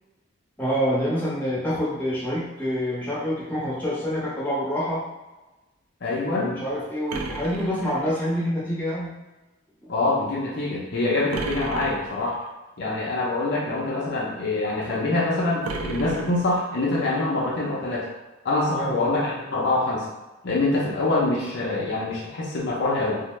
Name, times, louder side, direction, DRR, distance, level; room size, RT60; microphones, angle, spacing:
voice 1, 0.6-5.0 6.2-9.1 9.8-9.9 18.7-19.0, equal, 10° left, -8 dB, 0.8 m, -27 dB
voice 2, 6.0-6.6 9.9-12.4 12.8-18.1 18.4-20.1 20.4-23.2, left 2 dB, 55° left, -5 dB, 0.6 m, -25 dB
sound 1, 7.1-8.5 11.3-12.5 15.6-17.0, right 3 dB, 85° right, 0.4 m, -34 dB
2.6 x 2.1 x 3.1 m, 1.1 s
head